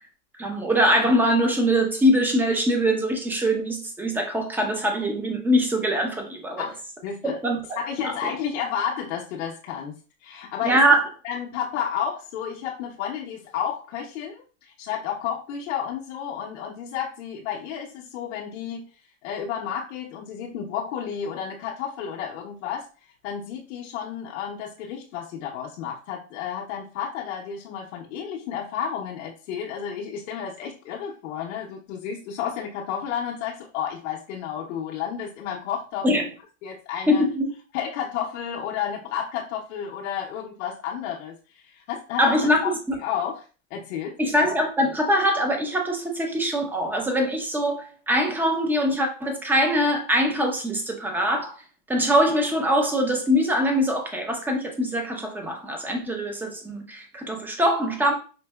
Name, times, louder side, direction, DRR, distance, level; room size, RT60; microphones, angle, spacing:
voice 1, 0.4-6.6 7.2-7.6 8.0-8.3 10.6-11.1 36.0-36.2 37.1-37.5 42.2-43.0 44.2-51.6 51.9-58.1, equal, 5° right, 3 dB, 0.6 m, -23 dB
voice 2, 6.6-7.4 7.8-10.8 11.2-18.9 19.2-22.9 23.2-36.3 36.6-37.2 37.7-42.7 43.0-44.2, left 8 dB, 65° left, -2 dB, 0.8 m, -31 dB
5.2 x 2.7 x 2.2 m, 0.37 s
supercardioid pair, 125°, 40 cm